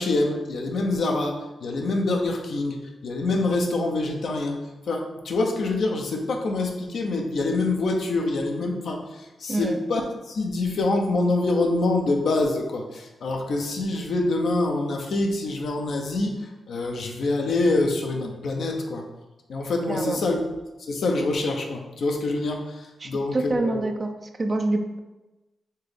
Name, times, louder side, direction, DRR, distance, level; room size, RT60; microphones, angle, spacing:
voice 1, 0.0-4.6 4.9-10.0 10.3-19.1 19.5-20.4 20.9-23.8, left 2 dB, 75° left, 2 dB, 0.7 m, -25 dB
voice 2, 9.5-9.8 19.9-20.2 23.0-24.1 24.4-25.0, right 2 dB, 45° right, 5 dB, 0.6 m, -26 dB
4.5 x 3.4 x 3.3 m, 1.1 s
supercardioid pair, 40°, 0 cm